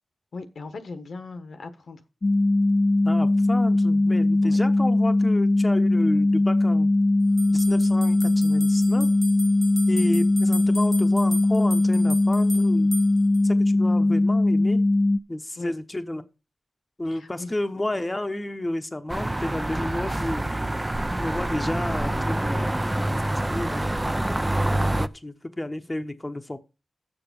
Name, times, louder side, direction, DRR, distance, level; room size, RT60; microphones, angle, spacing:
voice 1, 0.3-2.0 4.4-4.6 15.6-15.7 17.1-17.5, left 3 dB, 75° left, 1.3 m, -38 dB
sound 1, 2.2-15.2, left 2 dB, 40° left, 0.6 m, -20 dB
voice 2, 3.0-6.9 7.5-9.1 9.9-12.9 13.4-14.9 15.3-16.2 17.0-20.5 21.2-26.6, left 1 dB, 20° left, 0.9 m, -31 dB
sound 2, 7.4-13.4, equal, ahead, 1.2 m, -37 dB
sound 3, 19.1-25.1, right 1 dB, 20° right, 0.5 m, -26 dB
7.0 x 6.9 x 7.0 m
cardioid pair, 65°, 0 cm